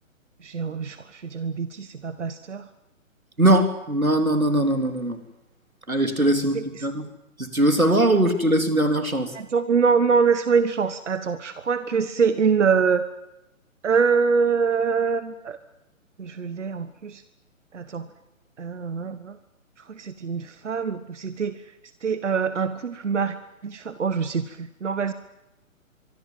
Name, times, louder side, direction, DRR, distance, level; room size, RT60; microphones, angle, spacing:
voice 1, 0.4-2.6 6.5-6.9 9.3-13.1 13.8-15.6 16.2-17.2 17.7-18.1 18.6-19.4 19.9-21.6 22.0-23.4 23.6-25.1, right 5 dB, 60° right, 12 dB, 1.4 m, -24 dB
voice 2, 3.4-5.2 5.9-7.0 7.4-9.3, right 1 dB, 90° right, 6 dB, 3.6 m, -21 dB
25.0 x 24.5 x 7.6 m, 0.93 s
figure-of-eight pair, 135°, 41 cm